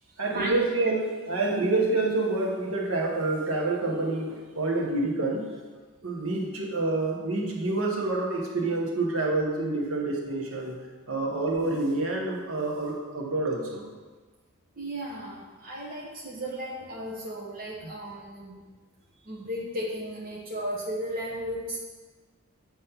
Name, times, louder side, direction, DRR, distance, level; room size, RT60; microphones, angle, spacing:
voice 1, 0.2-5.4 6.0-10.8 11.1-13.9 17.8-17.9, right 2 dB, 65° right, -2 dB, 1.2 m, -27 dB
voice 2, 14.7-18.6 19.2-21.9, equal, 40° right, -5 dB, 0.9 m, -35 dB
7.9 x 3.2 x 5.7 m, 1.4 s
head